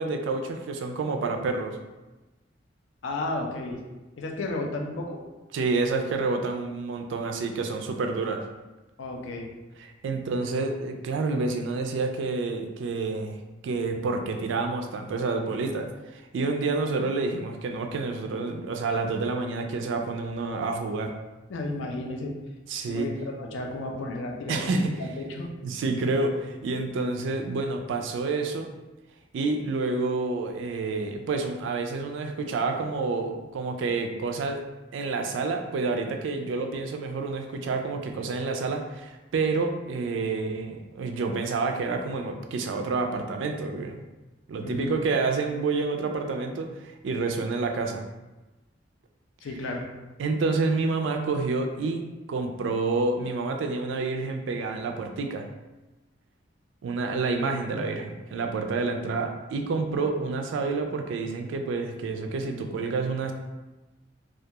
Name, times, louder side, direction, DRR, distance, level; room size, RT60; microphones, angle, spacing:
voice 1, 0.0-1.8 5.5-8.4 9.8-21.1 22.7-23.1 24.5-24.9 25.6-28.7 29.3-34.6 34.9-44.0 44.5-48.0 50.2-52.0 52.3-55.5 56.8-63.3, right 3 dB, 80° right, 4 dB, 0.3 m, -28 dB
voice 2, 3.0-3.8 4.2-5.2 9.0-9.5 21.5-22.3 22.9-24.6 25.0-25.5 44.6-45.0 49.4-49.9, left 2 dB, 85° left, 1 dB, 0.4 m, -33 dB
2.3 x 2.2 x 2.8 m, 1.1 s
head